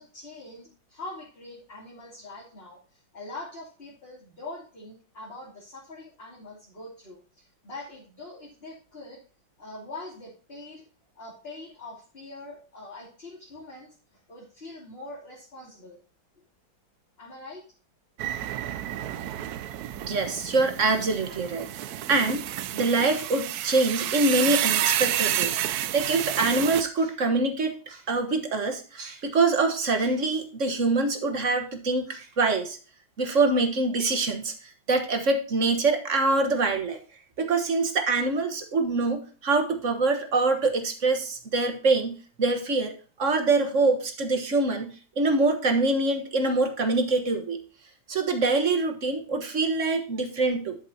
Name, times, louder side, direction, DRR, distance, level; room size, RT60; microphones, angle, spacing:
voice 1, 0.0-9.2 9.6-10.8 11.2-16.0 17.2-17.6, left 2 dB, 30° left, -6 dB, 3.0 m, -43 dB
sound 1, 18.2-26.8, right 12 dB, 75° right, 0.9 m, -30 dB
voice 2, 20.0-21.7 22.1-22.4 22.7-32.8 33.2-34.5 34.9-37.0 37.4-42.9 43.2-47.6 48.1-50.8, right 3 dB, 40° right, 6 dB, 1.5 m, -25 dB
11.5 x 7.3 x 2.8 m, 0.37 s
omnidirectional pair, 2.2 m